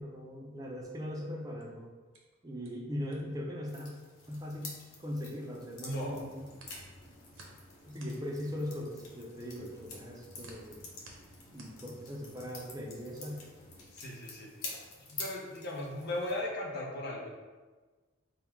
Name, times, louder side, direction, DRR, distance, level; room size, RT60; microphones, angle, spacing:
voice 1, 0.0-1.9 2.4-3.9 4.3-6.4 7.8-10.8 11.5-13.4, left 1 dB, 15° right, -1 dB, 0.5 m, -40 dB
sound 1, 1.6-5.6 5.9-12.5, right 3 dB, 65° right, 0.7 m, -58 dB
sound 2, 3.6-16.4, left 3 dB, 90° left, 0.9 m, -49 dB
voice 2, 5.8-6.2 13.9-14.5 15.1-17.3, left 1 dB, 50° left, -2 dB, 0.7 m, -37 dB
sound 3, 6.0-13.9, equal, 15° left, 1.1 m, -58 dB
3.7 x 2.2 x 4.4 m, 1.3 s
head